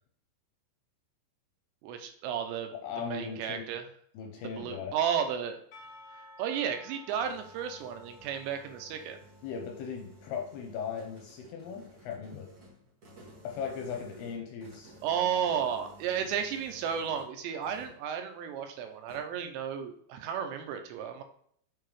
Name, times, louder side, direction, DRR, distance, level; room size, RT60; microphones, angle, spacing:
voice 1, 1.8-2.7 3.1-3.9 4.4-5.6 6.4-9.2 15.0-21.2, right 8 dB, 85° right, 6 dB, 2.8 m, -33 dB
voice 2, 2.7-3.7 4.1-5.0 9.4-12.5 13.4-14.9, left 6 dB, 85° left, 3 dB, 2.4 m, -38 dB
Percussion / Church bell, 5.7-10.5, left 2 dB, 65° left, 1.7 m, -54 dB
sound 1, 6.8-17.3 17.6-18.0 19.1-19.2, right 1 dB, 55° right, 1.3 m, -55 dB
7.1 x 4.7 x 3.1 m, 0.63 s
omnidirectional pair, 5.2 m